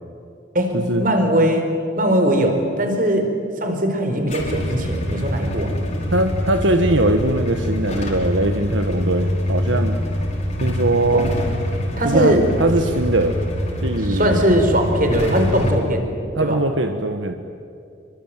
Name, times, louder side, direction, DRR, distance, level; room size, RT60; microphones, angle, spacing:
voice 1, 1.0-1.7 2.0-3.3 3.6-5.7 11.1-11.2 12.0-12.5 14.0-16.1 16.4-16.6, equal, 45° right, 5 dB, 4.6 m, -19 dB
Motorcycle / Engine starting / Idling, 4.3-15.7, equal, 35° left, 5.2 m, -25 dB
voice 2, 6.1-10.0 10.6-11.3 12.0-13.4 13.8-14.4 16.4-17.3, right 2 dB, 75° right, 6 dB, 1.4 m, -21 dB
27.0 x 24.0 x 9.1 m, 2.6 s
head